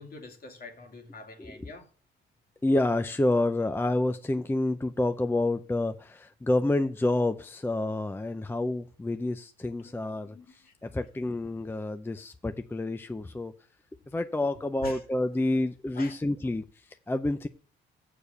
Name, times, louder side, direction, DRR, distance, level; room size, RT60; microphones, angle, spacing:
voice 1, 0.0-1.9 9.7-10.0 10.2-10.7 14.8-15.0 15.9-16.2, left 3 dB, 50° left, 2.5 m, -46 dB
voice 2, 2.6-13.5 14.1-17.5, left 2 dB, 10° left, 0.5 m, -28 dB
6.9 x 6.6 x 6.8 m
cardioid pair, 90°, 20 cm